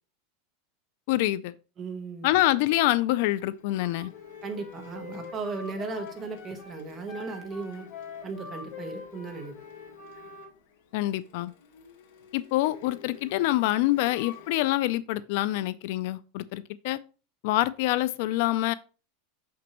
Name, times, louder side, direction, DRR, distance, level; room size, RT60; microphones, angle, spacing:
voice 1, 1.1-1.5 2.2-4.1 10.9-11.5 12.3-17.0 17.4-18.7, left 16 dB, 55° left, 0.3 m, -26 dB
voice 2, 1.8-2.3 4.4-7.9 8.2-9.5, right 4 dB, 20° right, 1.0 m, -36 dB
Printer, 2.3-14.7, left 7 dB, 70° left, 1.8 m, -51 dB
Wind instrument woodwind instrument, 3.7-10.5, left 5 dB, 35° left, 3.8 m, -44 dB
6.1 x 5.9 x 3.0 m
supercardioid pair, 170°, 0 cm